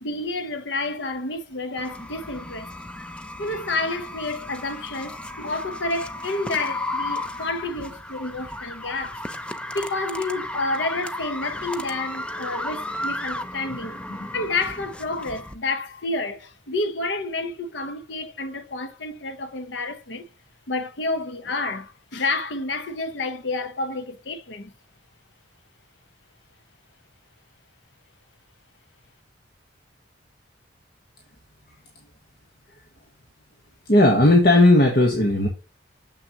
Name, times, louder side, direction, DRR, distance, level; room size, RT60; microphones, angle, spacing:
voice 1, 0.0-2.7 3.4-9.3 9.7-20.3 20.7-24.7, left 2 dB, 75° left, 1.0 m, -29 dB
sound 1, 1.8-15.5, left 1 dB, 5° left, 0.5 m, -34 dB
voice 2, 33.9-35.5, left 1 dB, 50° left, 1.2 m, -16 dB
6.8 x 6.2 x 2.9 m
head